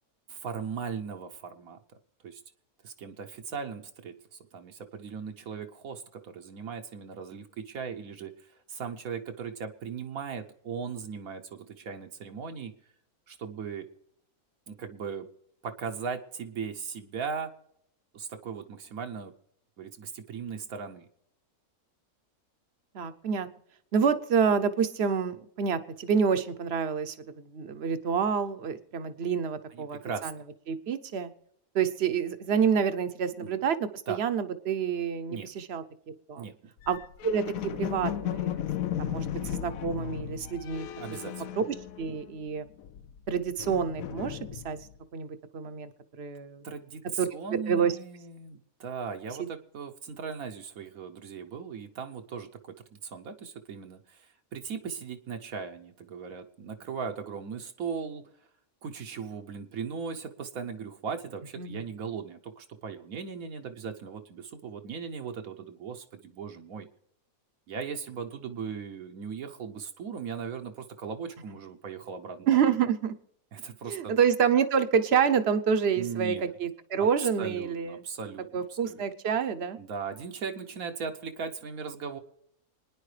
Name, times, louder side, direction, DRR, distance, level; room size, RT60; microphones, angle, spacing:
voice 1, 0.3-1.8 2.2-2.4 2.8-12.7 13.3-13.9 14.7-15.3 15.6-17.5 18.1-19.3 19.8-21.1 29.7-30.3 33.4-33.6 34.1-34.2 35.3-35.5 36.4-36.5 41.0-41.6 46.6-58.2 58.8-66.9 67.7-72.5 73.5-74.1 76.0-76.5 77.0-79.0 79.8-82.2, right 6 dB, 75° right, 5 dB, 1.3 m, -38 dB
voice 2, 22.9-23.5 23.9-30.3 30.7-31.3 31.7-35.8 36.3-36.5 36.9-37.0 37.2-38.7 39.0-40.9 41.6-42.7 43.3-44.8 45.1-45.9 46.2-46.6 47.2-47.3 47.7-47.9 61.6-61.8 72.5-73.1 73.9-78.0 78.5-79.8, right 7 dB, 50° right, 11 dB, 0.9 m, -28 dB
sound 1, 36.8-42.4 42.7-45.0, left 11 dB, 75° left, 1.0 m, -35 dB
26.0 x 10.0 x 3.3 m, 0.77 s
omnidirectional pair, 1.5 m